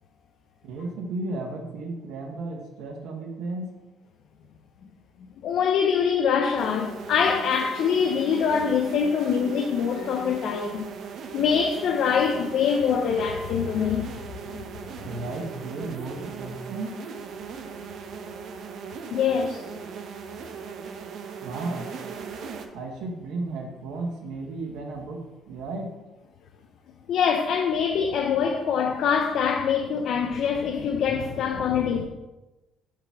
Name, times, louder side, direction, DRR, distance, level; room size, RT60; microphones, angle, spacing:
voice 1, 0.6-3.7 15.0-16.9 21.4-21.9 22.7-25.9, right 2 dB, 85° right, 0.9 m, -34 dB
voice 2, 5.4-10.9 11.3-14.2 14.5-14.6 19.1-19.7 27.1-32.1, left 7 dB, 60° left, 0.4 m, -24 dB
sound 1, 6.6-22.7, right 6 dB, 55° right, 0.6 m, -38 dB
5.8 x 4.8 x 3.4 m
cardioid pair, 155°, 0 cm